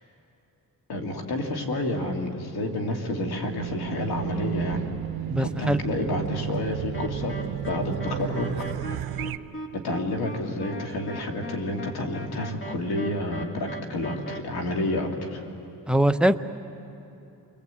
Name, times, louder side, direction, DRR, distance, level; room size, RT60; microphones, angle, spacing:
voice 1, 0.9-4.8 5.4-7.4 7.6-8.7 9.7-15.5, left 1 dB, 90° left, 2 dB, 2.6 m, -29 dB
Race car auto racing / Alarm, 3.1-9.4, right 11 dB, 75° right, 0.7 m, -33 dB
voice 2, 5.3-5.8 15.9-16.4, right 1 dB, 5° right, 7 dB, 0.8 m, -21 dB
sound 1, 6.9-14.4, right 1 dB, 35° left, 2.1 m, -38 dB
29.0 x 21.5 x 8.3 m, 2.8 s
cardioid pair, 90°, 37 cm